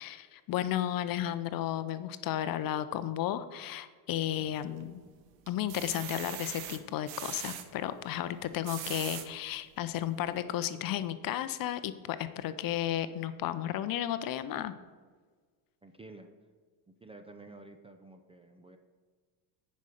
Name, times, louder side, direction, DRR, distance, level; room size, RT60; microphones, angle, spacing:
voice 1, 0.0-5.0 5.5-14.7, left 12 dB, 45° left, 12 dB, 0.6 m, -33 dB
sound 1, 4.4-5.0 5.5-7.6 8.4-9.3 9.9-10.0 10.3-10.4, right 10 dB, 65° right, 1.1 m, -41 dB
voice 2, 15.8-16.3 17.0-18.8, right 2 dB, 10° right, 6 dB, 0.5 m, -51 dB
9.4 x 5.3 x 6.5 m, 1.5 s
cardioid pair, 115°, 50 cm